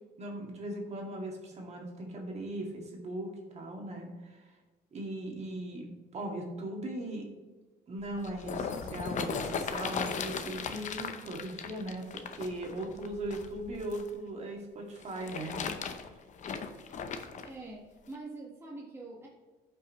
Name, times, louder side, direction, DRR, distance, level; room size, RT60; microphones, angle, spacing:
voice 1, 0.2-4.5 4.9-7.3 7.9-16.1, right 1 dB, 40° right, 0 dB, 2.1 m, -39 dB
sound 1, 8.0-14.1 15.0-17.5 18.1-18.2, left 6 dB, 45° left, 0.8 m, -37 dB
voice 2, 17.4-19.3, right 2 dB, 15° right, -3 dB, 1.5 m, -44 dB
13.5 x 5.8 x 3.1 m, 1.2 s
cardioid pair, 110°, 17 cm